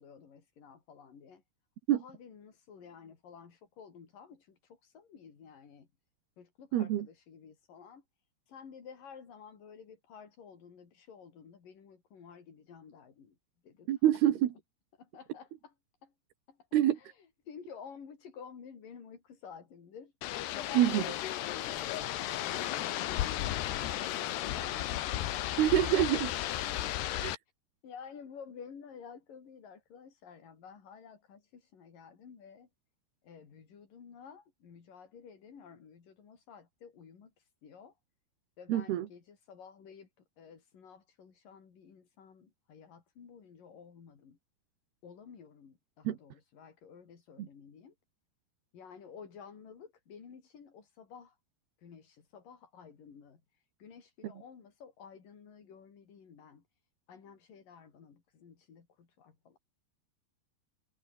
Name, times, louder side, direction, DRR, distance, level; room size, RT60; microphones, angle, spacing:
voice 1, 0.0-1.4 1.9-5.9 6.4-13.4 13.6-14.1 15.0-15.7 16.0-16.1 16.5-25.8 26.6-26.7 27.8-32.7 33.2-38.0 38.6-40.1 40.4-44.4 45.0-48.0 48.7-51.4 51.8-56.6 57.1-59.6, left 6 dB, 55° left, 5.3 m, -52 dB
voice 2, 6.7-7.1 13.9-14.5 16.7-17.0 20.8-21.0 25.6-26.4 27.2-27.4 38.7-39.1 46.1-46.2 47.4-47.5, right 12 dB, 75° right, 3.6 m, -26 dB
sound 1, 20.2-27.4, left 13 dB, 80° left, 3.5 m, -34 dB
omnidirectional pair, 4.7 m